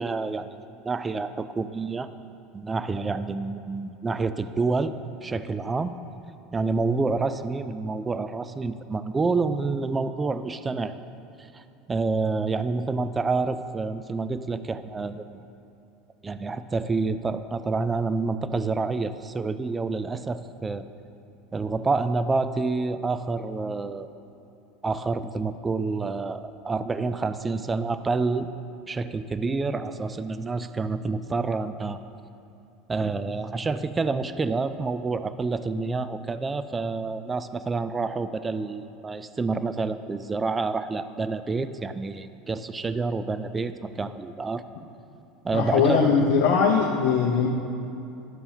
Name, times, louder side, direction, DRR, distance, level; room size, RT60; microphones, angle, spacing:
voice 1, 0.0-2.1 2.5-4.9 5.2-5.9 6.5-11.0 11.5-11.6 11.9-15.4 16.2-20.8 21.5-24.1 24.8-28.5 28.9-32.0 32.9-44.7 45.4-46.0, right 3 dB, 20° right, 12 dB, 0.3 m, -28 dB
voice 2, 45.5-47.5, left 5 dB, 60° left, -1 dB, 0.7 m, -21 dB
11.0 x 6.9 x 2.7 m, 2.8 s
figure-of-eight pair, 75°, 0 cm